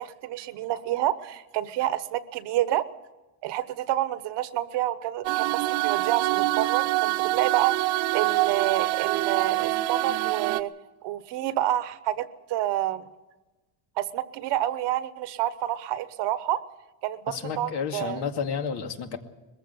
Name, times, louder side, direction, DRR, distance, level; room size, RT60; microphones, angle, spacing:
voice 1, 0.0-2.9 3.4-10.7 11.0-13.1 14.0-16.6 17.0-18.2, right 13 dB, 65° right, 13 dB, 1.2 m, -28 dB
sound 1, 5.2-10.6, right 18 dB, 85° right, 0.9 m, -25 dB
voice 2, 17.3-19.2, left 6 dB, 60° left, 5 dB, 2.3 m, -31 dB
21.5 x 15.0 x 8.1 m, 1.1 s
cardioid pair, 140°, 45 cm